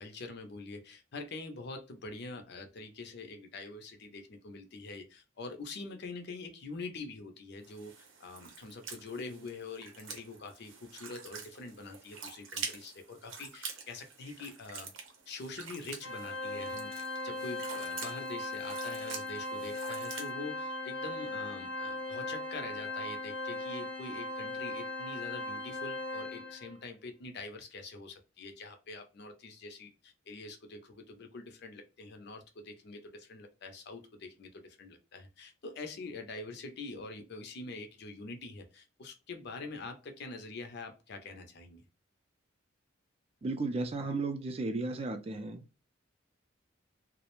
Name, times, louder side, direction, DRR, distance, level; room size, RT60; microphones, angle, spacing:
voice 1, 0.0-14.9 15.3-41.8, left 3 dB, 55° left, 0.5 m, -45 dB
sound 1, 7.6-20.3, right 5 dB, 80° right, 0.7 m, -46 dB
Organ, 16.0-26.8, left 2 dB, 90° left, 0.8 m, -38 dB
voice 2, 43.4-45.8, right 3 dB, 30° right, 0.4 m, -34 dB
2.4 x 2.0 x 2.9 m
head